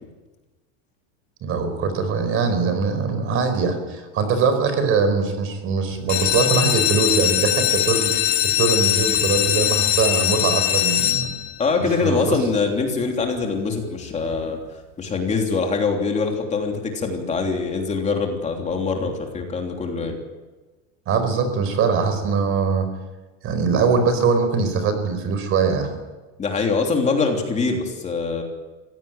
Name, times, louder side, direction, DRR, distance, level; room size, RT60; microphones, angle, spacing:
voice 1, 1.4-8.3 8.6-11.3 11.8-12.4 21.1-22.8 23.4-25.9, right 5 dB, 35° right, 9 dB, 4.8 m, -22 dB
sound 1, 6.0-11.7 12.3-12.8 13.2-13.3 13.6-13.7 14.1-14.2, left 13 dB, 80° left, 3.5 m, -21 dB
voice 2, 11.6-14.6 15.0-20.2 26.4-28.4, left 4 dB, 20° left, 2 dB, 3.3 m, -23 dB
23.5 x 17.0 x 9.1 m, 1.2 s
supercardioid pair, 160°, 38 cm